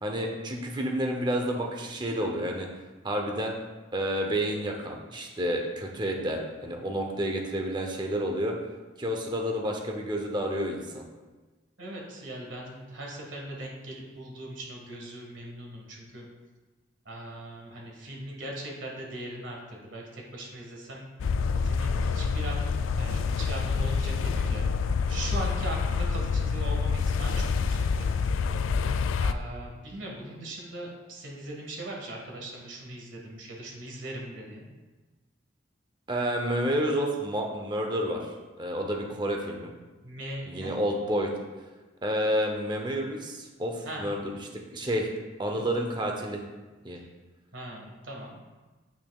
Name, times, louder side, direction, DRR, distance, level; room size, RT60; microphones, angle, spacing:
voice 1, 0.0-2.7 3.0-3.5 3.9-8.5 9.0-11.1 36.1-38.3 38.6-39.7 40.4-41.3 42.0-44.2 44.7-45.1 45.4-46.4 46.8-47.0, equal, 25° right, 1 dB, 0.6 m, -29 dB
voice 2, 11.8-16.3 17.0-21.0 21.5-24.6 25.1-28.1 29.2-34.7 40.0-40.7 43.8-44.0 45.5-45.6 47.5-48.4, right 1 dB, 75° right, -1 dB, 1.6 m, -40 dB
sound 1, 21.2-29.3, left 5 dB, 85° left, 0.3 m, -27 dB
8.3 x 6.0 x 2.3 m, 1.2 s
head